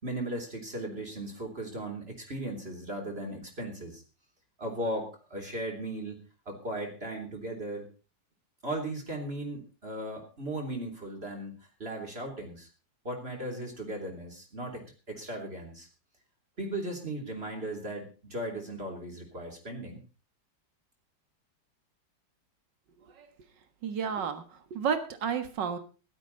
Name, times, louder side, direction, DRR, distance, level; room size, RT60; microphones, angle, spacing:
voice 1, 0.0-4.0 4.6-7.9 8.6-11.5 11.8-12.7 13.0-15.9 16.6-20.0, right 1 dB, 30° right, 0 dB, 3.5 m, -37 dB
voice 2, 23.8-24.4 24.7-25.8, right 7 dB, 70° right, 9 dB, 2.2 m, -31 dB
16.0 x 12.5 x 4.0 m, 0.34 s
omnidirectional pair, 2.0 m